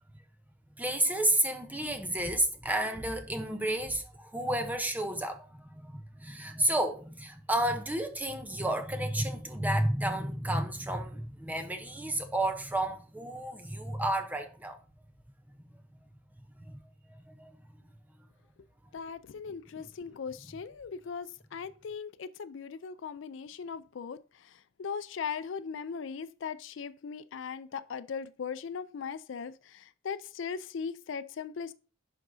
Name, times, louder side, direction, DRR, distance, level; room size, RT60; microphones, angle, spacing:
voice 1, 0.8-14.8 16.6-16.8 17.1-17.5, right 1 dB, 10° right, 0.7 m, -31 dB
voice 2, 18.9-31.7, left 6 dB, 65° left, 0.4 m, -39 dB
11.0 x 4.8 x 2.7 m
head